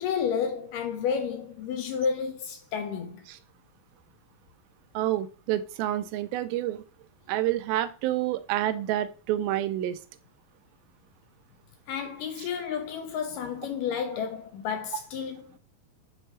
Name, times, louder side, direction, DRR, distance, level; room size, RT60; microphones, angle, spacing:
voice 1, 0.0-3.3 11.9-15.6, left 7 dB, 80° left, 2.0 m, -31 dB
voice 2, 4.9-6.8 7.3-10.0, right 13 dB, 85° right, 2.4 m, -28 dB
7.9 x 4.4 x 3.2 m
omnidirectional pair, 4.3 m